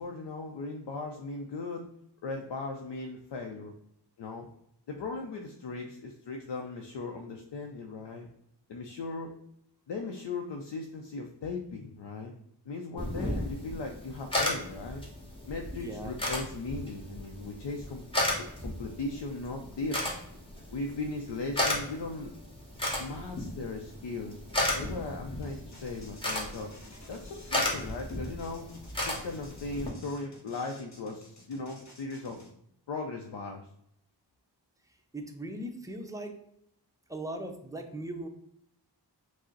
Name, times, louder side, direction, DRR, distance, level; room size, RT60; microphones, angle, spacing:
voice 1, 0.0-1.9 2.2-3.7 4.2-4.5 4.9-8.3 8.7-9.3 9.9-12.3 12.7-15.0 15.5-18.0 18.4-20.0 20.7-22.3 23.0-24.4 24.7-26.7 27.1-28.7 29.0-32.4 32.9-33.7, left 3 dB, 80° left, 2 dB, 0.6 m, -38 dB
sound 1, 13.0-29.9, left 1 dB, 10° left, 1.3 m, -35 dB
voice 2, 15.7-16.2 35.1-36.4 37.1-38.3, right 1 dB, 10° right, 4 dB, 0.6 m, -39 dB
sound 2, 25.4-32.5, left 1 dB, 40° left, 1.0 m, -53 dB
4.9 x 2.1 x 3.8 m, 0.73 s
wide cardioid pair, 60°, 42 cm